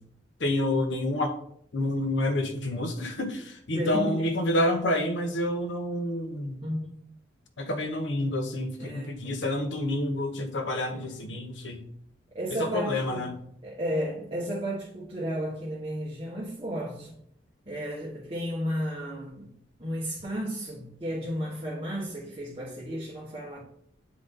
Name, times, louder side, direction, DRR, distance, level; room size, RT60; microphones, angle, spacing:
voice 1, 0.4-1.4 1.7-6.6 7.6-11.9 12.6-13.4, left 1 dB, 80° left, 0.9 m, -28 dB
voice 2, 3.7-4.3 6.6-6.8 8.8-9.1 10.9-11.3 12.3-13.3 13.6-17.1 17.7-19.5 19.8-23.6, equal, 30° right, 1.3 m, -33 dB
8.2 x 3.8 x 3.7 m
head